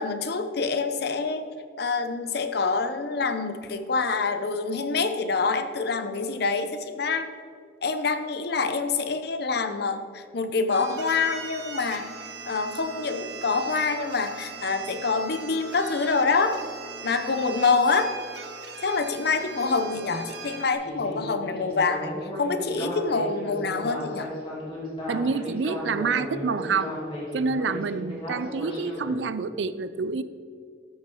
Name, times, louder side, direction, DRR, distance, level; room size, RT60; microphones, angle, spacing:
voice 1, 0.0-1.4 1.8-7.3 7.8-12.0 12.5-16.6 17.0-18.1 18.8-22.1 22.4-24.3, left 4 dB, 60° left, 9 dB, 0.8 m, -26 dB
sound 1, 10.7-20.7, right 5 dB, 65° right, 1.1 m, -40 dB
Speech synthesizer, 20.8-29.1, left 1 dB, 30° left, 2.8 m, -35 dB
voice 2, 25.1-27.0 27.3-30.2, right 5 dB, 80° right, 14 dB, 0.5 m, -27 dB
13.5 x 6.8 x 4.5 m, 2.3 s
head